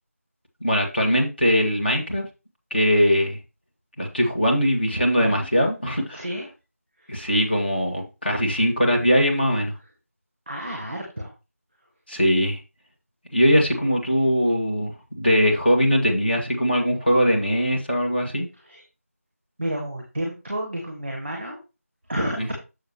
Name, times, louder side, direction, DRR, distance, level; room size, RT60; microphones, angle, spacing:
voice 1, 0.6-2.3 2.7-3.4 4.0-6.2 7.1-9.7 12.1-12.6 13.3-18.5 22.4-22.5, equal, 40° left, 0 dB, 2.1 m, -21 dB
voice 2, 5.1-5.5 6.1-6.5 7.0-7.2 10.5-11.3 18.6-18.8 19.6-21.6 22.1-22.5, right 1 dB, 5° right, 0 dB, 1.2 m, -31 dB
7.8 x 6.8 x 3.1 m, 0.28 s
figure-of-eight pair, 175°, 8 cm